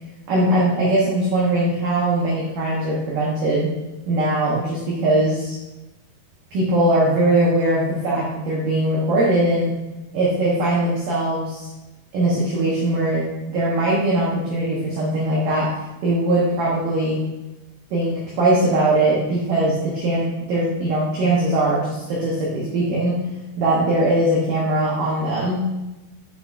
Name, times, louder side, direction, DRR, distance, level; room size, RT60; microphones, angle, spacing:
voice 1, 0.3-3.7 4.1-5.6 6.5-9.7 10.1-11.7 12.1-15.7 16.0-17.2 17.9-23.2 23.6-25.6, right 1 dB, 90° right, -5 dB, 1.8 m, -20 dB
6.8 x 6.0 x 2.5 m, 1.0 s
omnidirectional pair, 5.3 m